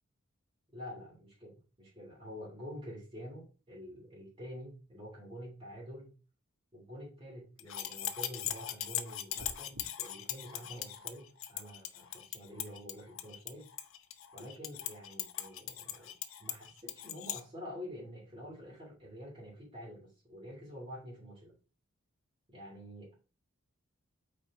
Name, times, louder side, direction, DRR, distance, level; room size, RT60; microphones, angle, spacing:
voice 1, 0.7-6.2 6.7-13.7 14.3-21.5 22.5-23.1, equal, 25° right, -4 dB, 2.8 m, -48 dB
sound 1, 7.6-17.4, left 11 dB, 65° left, 0.8 m, -40 dB
sound 2, 9.4-9.9, equal, 80° right, 1.6 m, -49 dB
8.7 x 4.4 x 3.6 m, 0.34 s
head